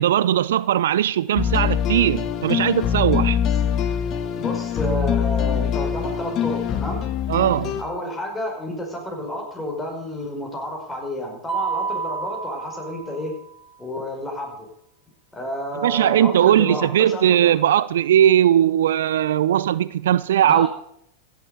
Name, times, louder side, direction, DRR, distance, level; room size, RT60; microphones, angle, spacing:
voice 1, 0.0-3.4 7.3-7.8 15.8-20.7, right 11 dB, 70° right, 0.4 m, -19 dB
sound 1, 1.3-7.8, left 8 dB, 40° left, 1.4 m, -23 dB
voice 2, 4.4-7.0 7.8-13.4 13.8-14.7 15.3-17.5 20.4-20.7, left 1 dB, 10° left, 5.1 m, -30 dB
Mallet percussion, 11.5-13.6, right 5 dB, 5° right, 2.4 m, -29 dB
15.5 x 7.4 x 6.7 m
hypercardioid pair, 95°, 0 cm